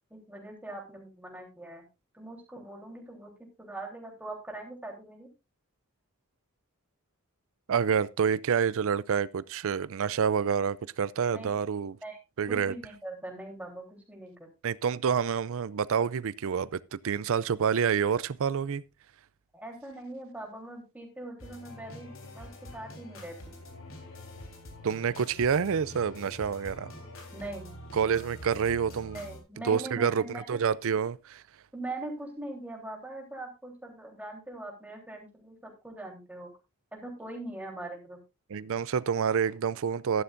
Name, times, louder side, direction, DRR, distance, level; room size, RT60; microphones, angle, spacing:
voice 1, 0.1-1.9 2.1-3.3 3.6-5.3 11.3-11.5 12.0-12.2 12.5-14.5 19.5-23.6 27.3-27.7 29.1-30.6 31.7-36.5 36.9-38.2, right 2 dB, 5° right, 3.6 m, -42 dB
voice 2, 7.7-12.0 12.4-12.7 14.6-18.8 24.8-26.9 27.9-29.2 29.6-31.4 38.5-40.2, right 7 dB, 65° right, 0.5 m, -28 dB
sound 1, 21.4-29.4, left 1 dB, 65° left, 3.8 m, -46 dB
13.5 x 11.5 x 2.6 m
head